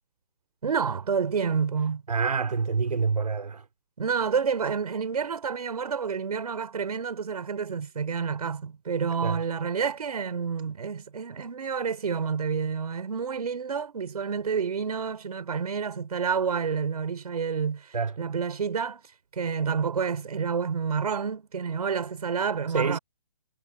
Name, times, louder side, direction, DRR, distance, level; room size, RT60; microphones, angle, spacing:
voice 1, 0.6-2.0 4.0-19.0 19.3-23.0, right 6 dB, 70° right, 5.4 m, -29 dB
voice 2, 2.1-3.6 9.2-9.4 17.9-18.1 22.7-23.0, right 5 dB, 90° right, 4.1 m, -26 dB
hypercardioid pair, 155°, 20 cm